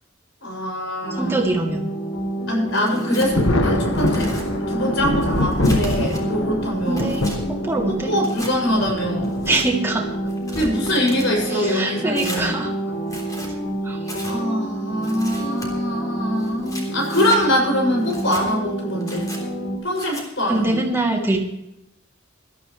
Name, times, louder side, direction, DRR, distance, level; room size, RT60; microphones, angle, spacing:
voice 1, 0.4-1.4 2.5-4.3 4.6-7.1 8.1-9.4 10.5-12.5 14.2-19.3 19.8-20.8, equal, 65° left, -1 dB, 6.7 m, -23 dB
sound 1, 1.0-19.8, right 1 dB, 50° left, 3.2 m, -29 dB
voice 2, 1.1-1.9 6.9-8.1 9.5-10.1 11.4-12.7 13.8-14.0 20.5-21.4, right 2 dB, 15° right, 0 dB, 2.7 m, -23 dB
Tearing, 2.7-3.3 3.9-4.5 5.0-6.2 6.7-7.4 8.2-8.5 9.2-9.7 10.3-11.3 12.1-12.5 13.0-13.5 14.0-14.4 15.0-15.7 16.4-17.4 18.0-18.4 19.0-19.4 20.0-20.2, left 1 dB, 20° left, 3.5 m, -36 dB
Thunder, 3.3-10.4 11.4-11.5 12.9-13.2 13.6-13.7 15.6-15.8 16.5-16.9, left 1 dB, 85° left, 1.6 m, -25 dB
20.5 x 13.0 x 3.2 m, 0.84 s
head